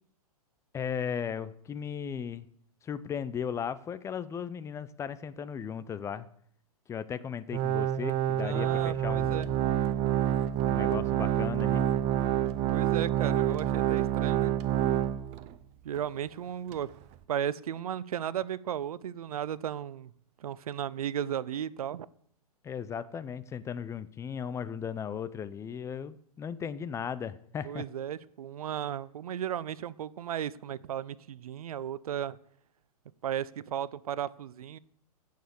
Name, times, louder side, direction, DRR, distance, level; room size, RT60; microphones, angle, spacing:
voice 1, 0.7-2.5 2.8-6.3 6.9-9.5 10.6-11.9 22.6-27.8, left 7 dB, 15° left, 0.6 m, -36 dB
Organ, 7.5-15.5 16.0-16.1 16.7-16.8, right 11 dB, 35° right, 0.9 m, -27 dB
voice 2, 8.3-9.5 12.7-14.5 15.8-16.9 17.3-20.1 20.4-22.1 27.6-32.4 33.2-34.8, right 10 dB, 70° right, 0.7 m, -35 dB
15.5 x 6.6 x 7.0 m
hypercardioid pair, 120°, 20 cm